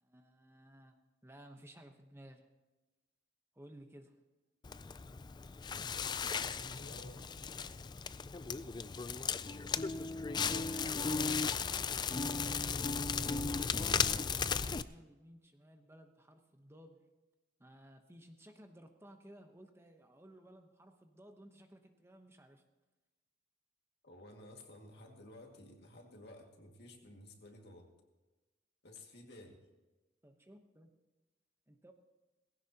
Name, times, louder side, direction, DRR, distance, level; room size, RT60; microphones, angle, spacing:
voice 1, 0.0-0.9 1.2-2.4 3.5-4.2 10.3-13.6 14.3-17.1 17.6-22.6 30.2-30.9 31.7-31.9, right 1 dB, 15° right, 5 dB, 0.9 m, -56 dB
Crackle, 4.6-14.8, left 5 dB, 25° left, 0.3 m, -36 dB
voice 2, 5.7-7.3 10.4-11.3 24.0-27.9 28.8-29.7, left 1 dB, 60° left, 2 dB, 2.1 m, -54 dB
19.0 x 16.0 x 2.9 m, 1.2 s
head